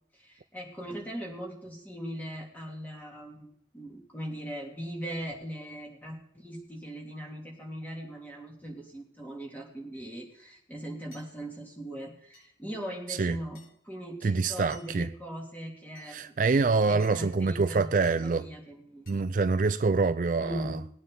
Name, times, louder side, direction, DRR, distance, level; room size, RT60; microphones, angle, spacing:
voice 1, 0.2-16.3 16.9-19.3 20.4-20.9, equal, 10° left, 3.0 m, -40 dB
sound 1, 9.9-10.1 11.1-11.3 12.3-12.5 13.5-13.7 14.7-14.9 15.9-16.1 17.0-17.2 18.0-18.2 19.1-19.2, equal, 60° left, 6.7 m, -55 dB
voice 2, 14.2-15.1 16.1-18.5 19.1-20.8, right 4 dB, 45° right, 0.4 m, -26 dB
20.5 x 9.2 x 3.9 m
head